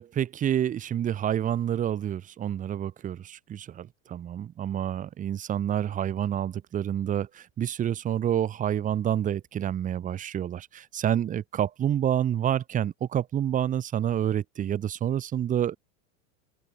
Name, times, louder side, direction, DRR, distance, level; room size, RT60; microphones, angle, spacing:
voice 1, 0.0-15.8, right 10 dB, 20° right, 2.3 m, -28 dB
supercardioid pair, 165°, 36 cm